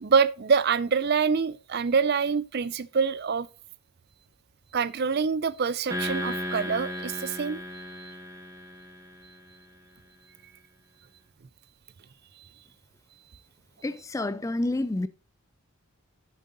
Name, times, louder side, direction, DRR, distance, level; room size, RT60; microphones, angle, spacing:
voice 1, 0.0-3.5 4.7-7.6 8.0-8.1, right 5 dB, 45° right, 0.5 m, -25 dB
sound 1, 5.9-9.4, left 1 dB, 15° right, 1.3 m, -35 dB
voice 2, 13.8-15.1, left 2 dB, 15° left, 0.3 m, -29 dB
7.6 x 7.4 x 3.9 m
head